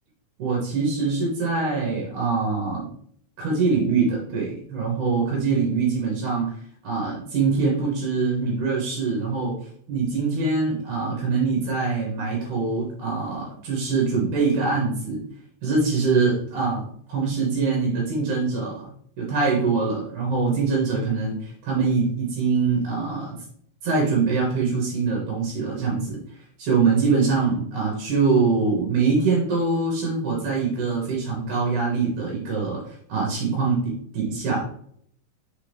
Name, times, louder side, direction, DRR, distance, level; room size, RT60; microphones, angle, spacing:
voice 1, 0.4-2.9 3.4-6.5 6.8-9.6 9.9-15.2 15.6-18.9 19.2-23.4 23.8-26.2 26.6-34.6, right 4 dB, 60° right, -3 dB, 2.2 m, -23 dB
5.9 x 4.9 x 3.5 m, 0.63 s
omnidirectional pair, 5.1 m